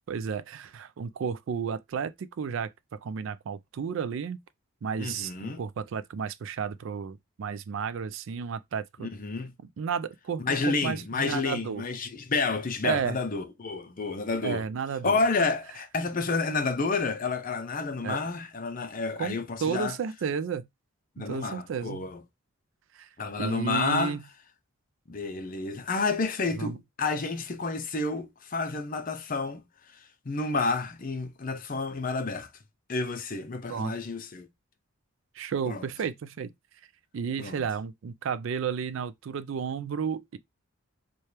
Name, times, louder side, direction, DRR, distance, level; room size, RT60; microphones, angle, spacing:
voice 1, 0.1-2.7 3.0-4.4 4.8-9.1 9.8-11.8 12.8-13.2 14.4-15.2 18.0-18.2 19.2-20.7 21.2-22.1 22.9-23.1 23.4-24.2 26.6-26.8 33.7-33.9 35.4-36.5 37.1-40.4, right 6 dB, 60° right, 0.3 m, -32 dB
voice 2, 5.0-5.6 9.1-9.5 10.4-14.6 15.0-19.9 21.2-22.2 23.2-24.2 25.1-29.6 30.3-32.5 32.9-34.5 35.7-35.9 37.4-37.6, left 4 dB, 40° left, 0.6 m, -30 dB
4.3 x 2.3 x 3.2 m
head